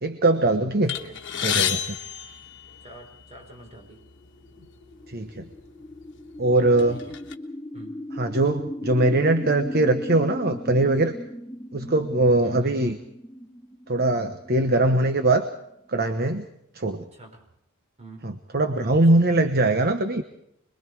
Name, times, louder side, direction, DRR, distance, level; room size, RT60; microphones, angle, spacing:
voice 1, 0.0-1.0 1.4-1.8 5.1-5.4 6.4-7.0 8.2-11.1 11.7-13.0 13.9-15.5 15.9-16.4 16.7-17.0 18.2-20.2, right 2 dB, 45° right, 8 dB, 1.1 m, -21 dB
sound 1, 0.9-3.2 4.1-4.2 4.5-4.7 5.5-5.7 6.2-7.3, left 9 dB, 60° left, 1.3 m, -29 dB
voice 2, 0.9-1.8 2.8-4.1 4.6-4.7 6.9-7.2 7.7-8.0 12.4-13.0 17.1-17.4 18.0-18.3, right 2 dB, 30° right, 2 dB, 5.0 m, -45 dB
sound 2, 4.0-16.1, equal, 5° left, 2.7 m, -38 dB
26.0 x 22.0 x 4.7 m, 0.78 s
head